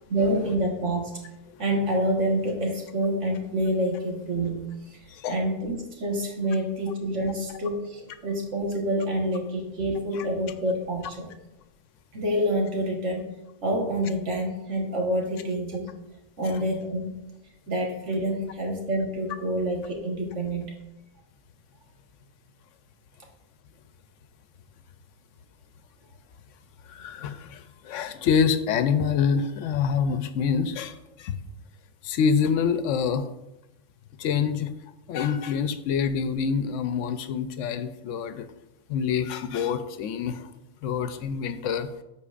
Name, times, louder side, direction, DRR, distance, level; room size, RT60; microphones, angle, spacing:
voice 1, 0.1-1.1 1.6-5.0 5.3-11.3 12.1-13.3 13.6-15.9 16.4-17.2 17.7-20.7, right 1 dB, 75° right, 0 dB, 1.7 m, -27 dB
voice 2, 5.1-5.4 10.1-10.3 16.4-16.6 26.9-31.4 32.0-33.3 34.2-34.7 35.1-38.5 38.9-40.5 40.8-41.9, left 6 dB, 85° left, 10 dB, 0.9 m, -26 dB
13.5 x 4.5 x 2.4 m, 0.94 s
omnidirectional pair, 1.3 m